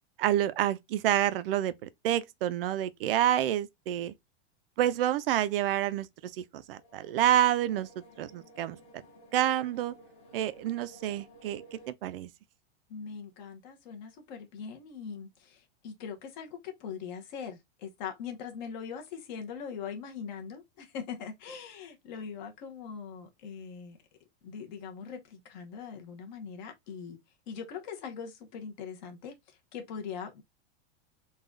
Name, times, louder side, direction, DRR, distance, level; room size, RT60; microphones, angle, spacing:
voice 1, 0.2-4.1 4.8-6.1 6.4-7.9 8.2-8.8 9.3-9.9 10.3-12.3, right 12 dB, 60° right, 0.5 m, -28 dB
sound 1, 6.7-11.9, right 1 dB, 20° left, 1.0 m, -55 dB
voice 2, 12.9-24.0 24.4-27.2 27.5-30.4, left 6 dB, 45° left, 1.1 m, -41 dB
3.9 x 2.4 x 3.7 m
supercardioid pair, 175°, 32 cm